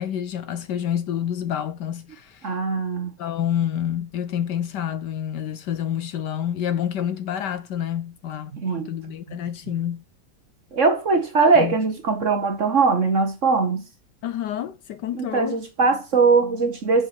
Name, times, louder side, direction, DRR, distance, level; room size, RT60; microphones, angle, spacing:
voice 1, 0.0-2.5 3.2-10.0 11.6-11.8 14.2-15.6, left 10 dB, 70° left, 1.2 m, -28 dB
voice 2, 2.4-3.1 8.5-8.9 10.7-13.8 15.1-17.1, right 4 dB, 45° right, 1.3 m, -21 dB
7.1 x 5.4 x 7.0 m
omnidirectional pair, 2.1 m